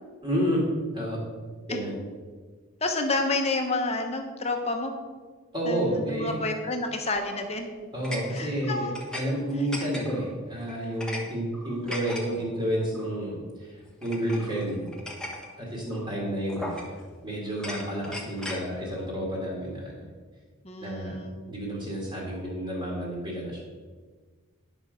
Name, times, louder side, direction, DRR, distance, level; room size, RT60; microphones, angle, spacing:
voice 1, 0.2-0.6 0.9-1.2 1.7-1.9 5.5-6.3 7.9-8.9 9.1-14.9 15.6-16.9 17.2-20.0 20.8-23.6, equal, 25° right, -4 dB, 2.1 m, -30 dB
voice 2, 2.8-4.9 5.7-7.7 8.3-8.9 20.6-21.4, left 2 dB, 30° left, 4 dB, 1.1 m, -29 dB
sound 1, 7.2-7.5 8.0-9.3 9.5-10.3 10.7-11.2 11.5-12.2 12.9-13.2 14.0-15.5 15.9-16.1 16.5-17.1 17.5-18.6, left 1 dB, 5° left, 1.1 m, -38 dB
10.5 x 6.2 x 5.2 m, 1.5 s
head